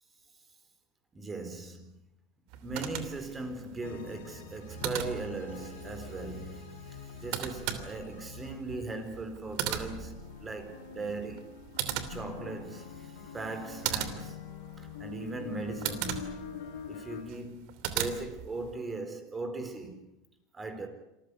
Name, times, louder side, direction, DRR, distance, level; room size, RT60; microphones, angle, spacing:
voice 1, 1.1-1.9 2.6-11.5 12.1-14.4 14.8-16.6 16.9-20.0 20.5-20.9, right 3 dB, 15° right, 4.3 m, -39 dB
sound 1, 2.5-18.7, right 11 dB, 60° right, 2.9 m, -39 dB
sound 2, 3.8-9.0 9.4-17.2, left 7 dB, 90° left, 5.0 m, -45 dB
26.5 x 15.0 x 9.9 m
supercardioid pair, 130°, 0 cm